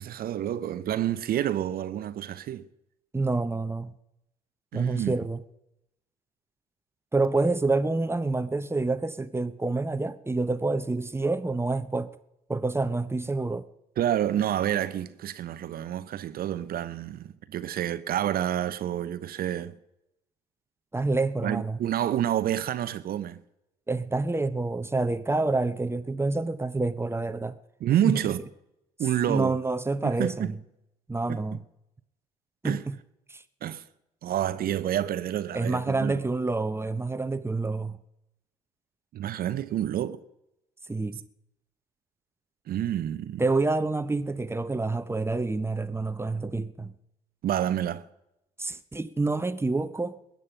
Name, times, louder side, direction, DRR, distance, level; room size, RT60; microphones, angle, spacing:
voice 1, 0.0-2.6 4.7-5.1 14.0-19.8 21.4-23.4 27.8-28.4 29.0-29.5 30.0-30.5 31.3-31.4 32.6-32.8 33.6-33.8 34.2-36.2 39.1-40.2 42.7-43.4 47.4-48.0, right 11 dB, 50° right, 0.8 m, -28 dB
voice 2, 3.1-3.9 4.7-5.4 7.1-12.1 12.5-13.7 20.9-21.8 23.9-27.6 27.9-28.2 29.3-30.6 31.1-31.6 32.6-33.0 33.3-33.4 35.5-38.0 40.9-41.2 43.4-46.9 48.6-50.2, right 3 dB, 15° right, 0.9 m, -28 dB
21.0 x 9.3 x 5.7 m
figure-of-eight pair, 50°, 19 cm